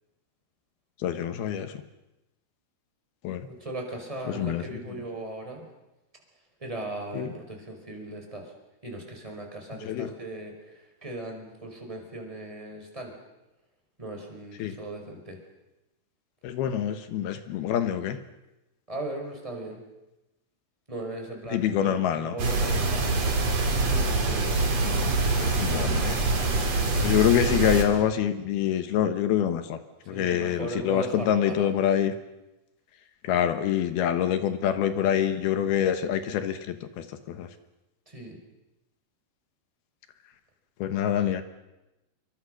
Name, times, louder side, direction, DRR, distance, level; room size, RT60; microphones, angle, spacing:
voice 1, 1.0-1.7 3.2-3.5 4.3-4.6 7.1-7.3 9.9-10.1 14.6-14.8 16.4-18.2 21.5-22.3 24.8-26.2 27.0-29.8 30.1-32.1 33.2-37.5 40.8-41.4, left 10 dB, 70° left, 10 dB, 2.9 m, -26 dB
voice 2, 3.5-5.7 6.6-8.5 8.8-13.1 14.0-15.4 18.9-19.8 20.9-23.2 24.2-24.7 30.0-31.7 38.1-38.4, right 2 dB, 5° right, 1 dB, 4.7 m, -38 dB
sound 1, 22.4-27.8, right 3 dB, 40° right, 3.7 m, -25 dB
26.5 x 23.0 x 6.5 m, 0.96 s
omnidirectional pair, 5.0 m